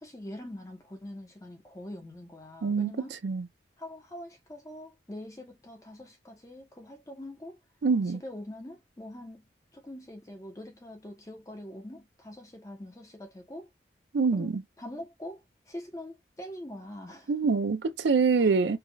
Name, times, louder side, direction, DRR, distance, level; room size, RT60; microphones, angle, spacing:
voice 1, 0.0-3.2 3.8-7.6 8.1-13.7 14.3-17.5 18.4-18.6, left 1 dB, 20° left, 0.8 m, -44 dB
voice 2, 7.8-8.2 14.1-14.6 17.3-18.8, right 4 dB, 75° right, 0.4 m, -25 dB
4.6 x 2.3 x 2.2 m
head